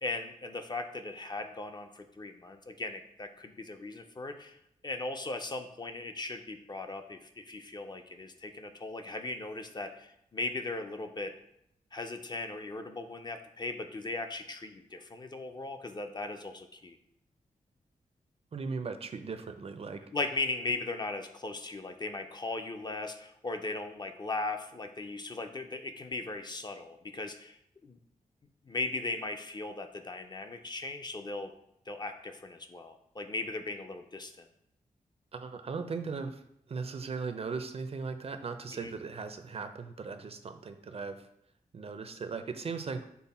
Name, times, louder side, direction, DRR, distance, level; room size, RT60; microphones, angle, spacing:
voice 1, 0.0-4.6 4.8-11.3 11.9-17.0 20.1-27.6 27.8-28.0 28.7-31.5 31.9-34.5 38.7-38.9, left 2 dB, 30° left, 6 dB, 0.4 m, -38 dB
voice 2, 18.5-20.0 35.3-36.4 36.7-41.3 41.7-43.0, right 4 dB, 45° right, 8 dB, 0.4 m, -38 dB
5.3 x 2.1 x 4.1 m, 0.76 s
wide cardioid pair, 95°, 14 cm